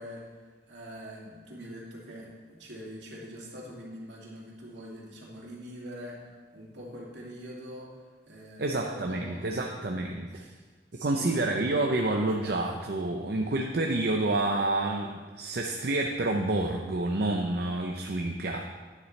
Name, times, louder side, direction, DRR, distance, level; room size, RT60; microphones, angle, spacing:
voice 1, 0.0-10.0 10.3-10.6 10.9-11.4, equal, 75° right, -4 dB, 2.5 m, -44 dB
voice 2, 8.6-10.4 10.9-18.7, right 2 dB, 60° right, 1 dB, 0.7 m, -29 dB
11.0 x 10.0 x 3.3 m, 1.4 s
head